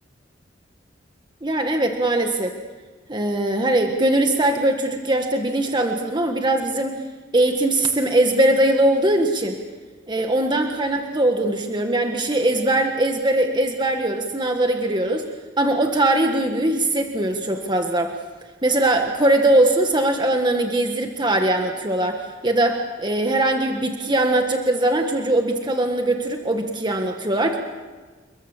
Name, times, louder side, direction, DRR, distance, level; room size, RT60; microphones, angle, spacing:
voice 1, 1.4-2.5 3.1-6.9 7.3-9.6 10.1-15.2 15.6-18.1 18.6-27.6, right 1 dB, 25° right, 4 dB, 1.6 m, -21 dB
29.5 x 22.0 x 7.3 m, 1.4 s
head